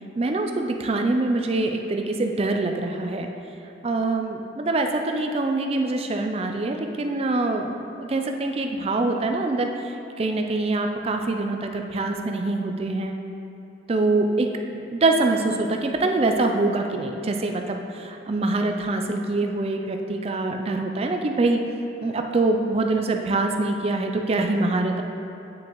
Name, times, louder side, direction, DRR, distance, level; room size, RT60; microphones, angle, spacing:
voice 1, 0.2-3.3 3.8-13.1 13.9-14.5 14.9-21.6 22.0-25.0, right 2 dB, 30° right, 4 dB, 0.4 m, -24 dB
8.9 x 6.0 x 3.0 m, 2.9 s
head